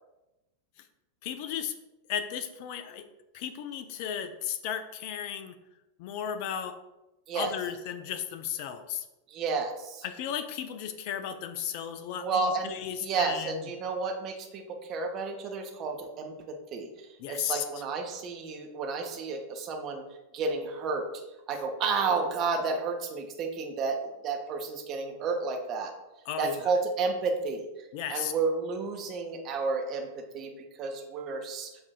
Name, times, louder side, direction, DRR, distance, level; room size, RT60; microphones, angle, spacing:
voice 1, 1.2-1.7 2.1-3.1 3.3-5.5 6.0-6.8 7.3-9.0 10.0-13.6 17.2-17.6 26.3-26.6 27.9-28.3, left 9 dB, 45° left, 8 dB, 0.3 m, -35 dB
voice 2, 9.3-10.0 12.1-12.7 13.0-14.6 14.9-16.9 17.3-20.0 20.3-21.0 21.5-24.0 24.2-25.9 26.4-27.6 28.1-30.1 30.3-30.5 30.8-31.7, right 4 dB, 35° right, 4 dB, 0.5 m, -31 dB
5.3 x 2.3 x 2.3 m, 0.97 s
figure-of-eight pair, 90°, 0 cm